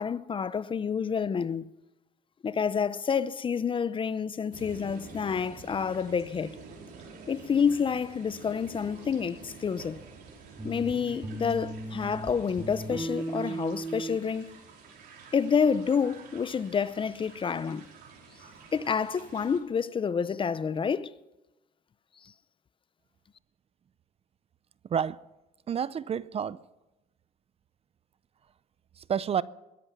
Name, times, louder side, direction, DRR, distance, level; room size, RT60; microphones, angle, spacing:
voice 1, 0.0-1.6 2.4-6.6 7.3-10.0 10.6-14.5 15.3-17.9 18.7-21.1, left 6 dB, 30° left, 0.6 m, -28 dB
sound 1, 4.5-19.6, right 4 dB, 70° right, 5.0 m, -49 dB
sound 2, 10.6-12.3 12.6-14.2, right 2 dB, 15° right, 2.1 m, -36 dB
voice 2, 25.7-26.6 29.0-29.4, right 8 dB, 35° right, 0.5 m, -29 dB
21.5 x 11.0 x 6.0 m
cardioid pair, 110°, 17 cm